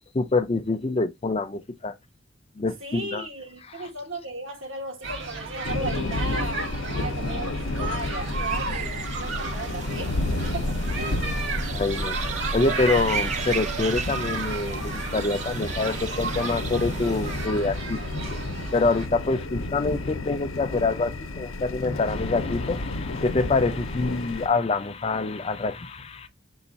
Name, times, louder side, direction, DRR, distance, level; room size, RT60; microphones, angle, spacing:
voice 1, 0.1-1.9 2.6-3.3 3.7-3.9 7.0-7.1 11.7-12.2 12.5-18.0 18.7-26.3, left 3 dB, 30° left, 0.4 m, -26 dB
voice 2, 2.8-10.2 10.5-11.3, right 2 dB, 75° right, 1.4 m, -36 dB
sound 1, 5.0-19.1, right 3 dB, 60° right, 1.5 m, -34 dB
sound 2, 5.6-24.5, left 2 dB, 80° left, 0.7 m, -31 dB
sound 3, 8.0-17.5, right 6 dB, 35° right, 0.4 m, -36 dB
5.5 x 2.4 x 4.0 m
head